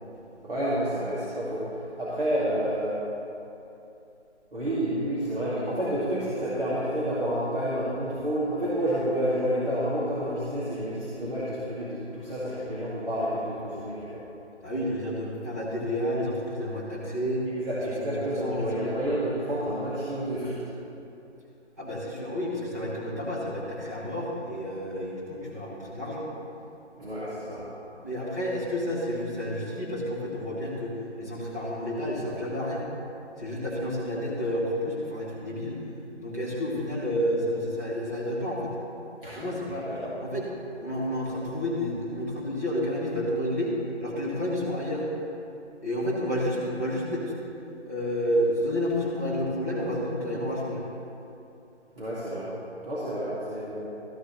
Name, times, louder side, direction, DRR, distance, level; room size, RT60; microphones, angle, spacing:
voice 1, 0.4-3.0 4.5-14.2 17.6-20.6 27.0-27.6 39.2-39.5 39.9-40.1 52.0-52.5 52.9-53.8, equal, 50° right, -10 dB, 2.3 m, -29 dB
voice 2, 14.6-17.5 18.0-18.1 18.4-19.0 21.8-26.3 27.9-30.9 31.2-32.8 33.4-35.8 36.2-38.7 39.2-39.9 40.2-40.5 40.8-45.0 45.8-47.3 47.8-50.8, equal, 15° right, -8 dB, 1.1 m, -30 dB
13.0 x 11.0 x 3.2 m, 2.8 s
figure-of-eight pair, 160°, 36 cm